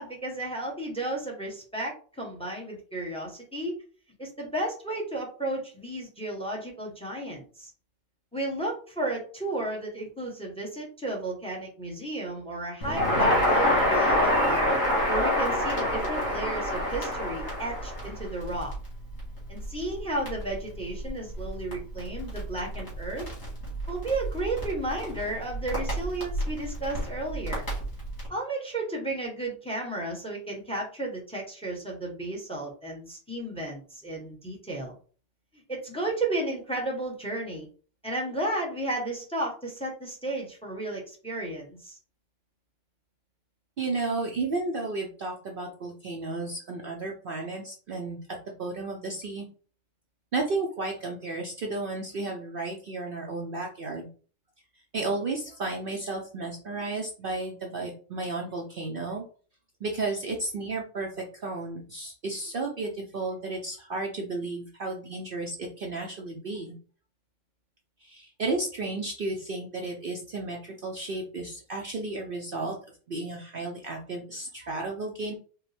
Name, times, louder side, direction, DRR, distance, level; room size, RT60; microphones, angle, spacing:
voice 1, 0.0-3.7 4.2-7.7 8.3-14.7 15.1-18.7 19.5-23.2 23.9-27.6 28.3-34.9 35.7-37.7 38.0-42.0, right 2 dB, 5° left, 0 dB, 0.9 m, -33 dB
Crackle, 12.8-28.3, left 1 dB, 60° left, 2.2 m, -28 dB
voice 2, 43.8-48.2 48.6-49.5 50.3-54.1 54.9-59.3 59.8-66.7 68.0-72.8 73.1-75.4, right 3 dB, 55° right, 0 dB, 0.7 m, -33 dB
4.7 x 2.2 x 3.3 m, 0.40 s
omnidirectional pair, 1.3 m